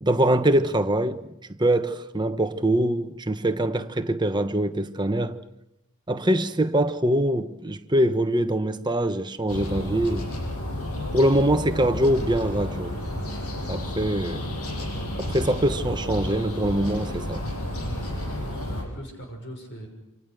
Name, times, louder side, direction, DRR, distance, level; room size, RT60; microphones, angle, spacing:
voice 1, 0.0-5.4 6.1-10.3 11.1-13.0 13.7-14.4 15.2-17.4, right 1 dB, 20° right, 1.2 m, -23 dB
sound 1, 9.5-18.8, left 1 dB, 90° left, 7.6 m, -31 dB
voice 2, 18.2-19.9, equal, 55° left, 6.3 m, -41 dB
29.0 x 27.0 x 6.7 m
head